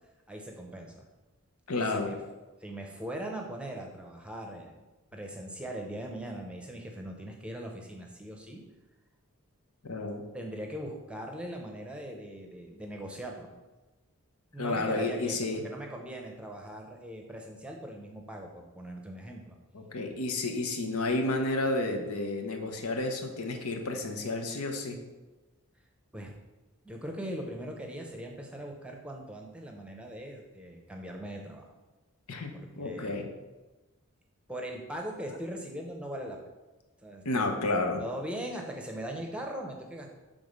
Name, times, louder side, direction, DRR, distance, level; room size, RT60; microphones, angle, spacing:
voice 1, 0.3-1.0 1.9-2.2 2.6-4.9 5.1-8.6 10.3-13.5 14.5-19.6 26.1-26.3 26.8-31.7 32.5-33.2 34.5-36.4 37.0-37.5 38.0-40.1, right 1 dB, 5° right, 1 dB, 0.7 m, -40 dB
voice 2, 1.7-2.1 9.8-10.2 14.6-15.6 19.7-25.0 32.3-33.3 37.2-38.0, left 2 dB, 90° left, 4 dB, 0.9 m, -31 dB
7.0 x 3.7 x 5.2 m, 1.1 s
head